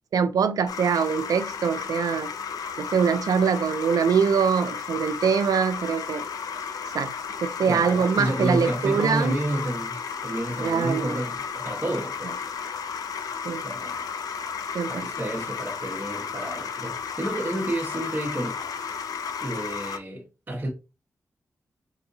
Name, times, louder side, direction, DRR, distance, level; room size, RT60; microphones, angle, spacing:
voice 1, 0.1-2.3 2.8-6.3 6.9-7.1 7.4-9.4 10.6-11.2 13.5-13.6 14.7-15.1, right 6 dB, 80° right, 0.4 m, -23 dB
sound 1, 0.7-20.0, left 6 dB, 85° left, 0.4 m, -33 dB
voice 2, 7.7-12.4 13.6-14.1 14.9-18.6 19.4-20.7, right 1 dB, 30° right, 1.2 m, -30 dB
4.6 x 2.7 x 2.6 m
cardioid pair, 55°, 6 cm